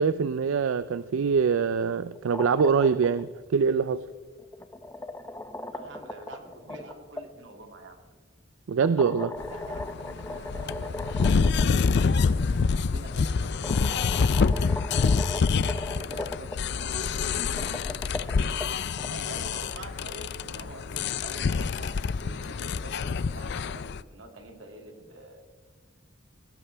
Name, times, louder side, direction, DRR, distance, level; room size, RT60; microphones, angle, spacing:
voice 1, 0.0-4.1 8.7-9.4, right 5 dB, 85° right, 0.4 m, -24 dB
sound 1, 2.1-3.2 4.4-7.2 8.8-11.6 12.0-12.1 13.1-13.2 13.6-16.6 17.4-19.1, left 2 dB, 15° left, 0.7 m, -37 dB
voice 2, 5.7-8.0 9.5-14.5 15.9-17.9 19.1-25.4, right 2 dB, 65° right, 2.4 m, -46 dB
sound 2, 9.4-24.0, left 5 dB, 60° left, 0.4 m, -27 dB
19.5 x 16.5 x 3.4 m
head